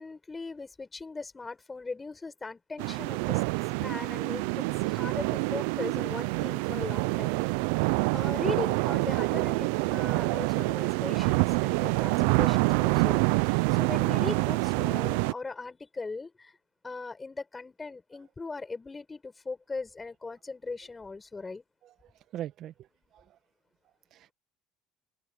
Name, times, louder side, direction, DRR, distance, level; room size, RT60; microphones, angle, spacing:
voice 1, 0.0-3.4 3.8-7.3 8.1-13.2 13.4-16.5 16.8-21.6, left 3 dB, 20° left, 6.1 m, -39 dB
sound 1, 2.8-15.3, right 25 dB, 80° right, 0.6 m, -27 dB
voice 2, 21.8-23.4 23.8-24.3, right 11 dB, 60° right, 1.3 m, -43 dB
supercardioid pair, 80°, 0 cm